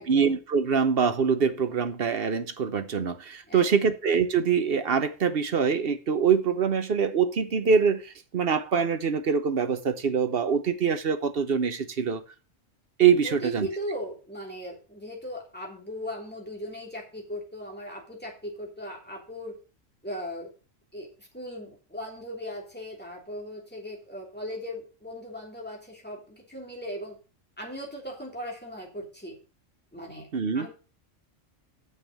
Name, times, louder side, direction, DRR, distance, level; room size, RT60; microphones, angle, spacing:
voice 1, 0.0-12.2 13.0-13.7 30.3-30.7, right 6 dB, 50° right, 1.0 m, -24 dB
voice 2, 13.2-19.6 20.0-20.5 20.9-27.2 27.6-29.4 29.9-30.3 30.5-30.7, equal, 5° left, 3.1 m, -38 dB
7.2 x 6.5 x 7.2 m
omnidirectional pair, 1.3 m